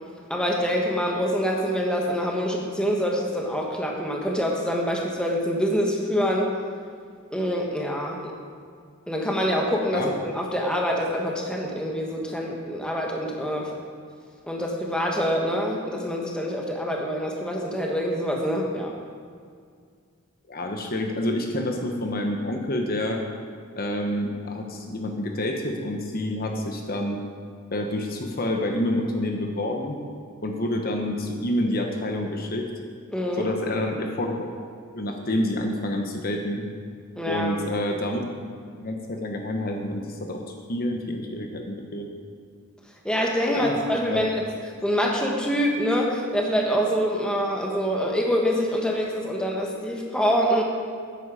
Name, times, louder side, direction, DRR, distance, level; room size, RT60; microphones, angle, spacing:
voice 1, 0.3-6.5 7.3-8.3 9.1-13.7 14.4-18.9 33.1-33.5 37.1-37.6 43.0-44.5 44.8-50.6, equal, 5° left, -1 dB, 1.4 m, -25 dB
voice 2, 20.5-23.2 23.8-27.2 27.7-30.0 30.4-32.7 33.4-34.5 34.9-36.6 37.3-38.4 38.7-40.4 40.7-42.1 43.5-43.8 44.1-44.2, left 1 dB, 45° left, 3 dB, 1.0 m, -28 dB
13.0 x 9.8 x 4.9 m, 2.1 s
head